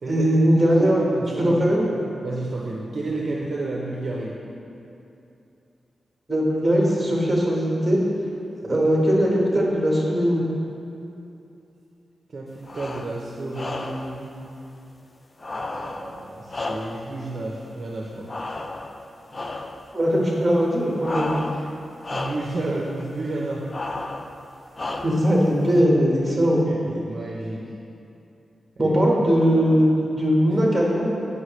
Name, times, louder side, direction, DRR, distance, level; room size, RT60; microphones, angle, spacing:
voice 1, 0.0-1.0 1.4-1.9 6.3-8.0 8.7-10.4 19.9-21.4 25.0-26.6 28.8-31.1, equal, 10° right, -4 dB, 1.3 m, -20 dB
voice 2, 0.8-1.6 1.9-4.3 8.6-8.7 12.3-14.3 15.8-18.3 22.1-23.7 26.4-27.6 28.8-29.0, right 2 dB, 45° right, -3 dB, 0.6 m, -31 dB
sound 1, 12.6-13.2 13.5-14.2 15.4-17.2 18.3-19.0 19.3-19.8 21.0-21.8 22.0-22.6 23.7-24.3 24.7-25.3, left 2 dB, 30° left, 0.3 m, -32 dB
7.9 x 5.5 x 3.1 m, 2.7 s
wide cardioid pair, 140°, 0 cm